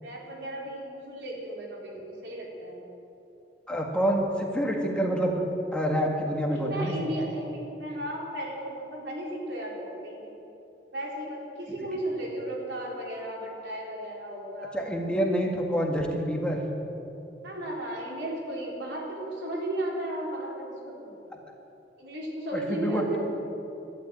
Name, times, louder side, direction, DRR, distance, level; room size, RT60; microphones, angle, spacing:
voice 1, 0.0-2.8 6.5-10.3 10.9-14.8 17.4-21.3 22.0-23.2, right 1 dB, 85° right, -3 dB, 4.0 m, -35 dB
voice 2, 3.7-5.4 5.7-7.1 14.7-16.6 22.5-23.2, equal, 5° left, 0 dB, 1.7 m, -27 dB
12.0 x 12.0 x 9.0 m, 2.9 s
head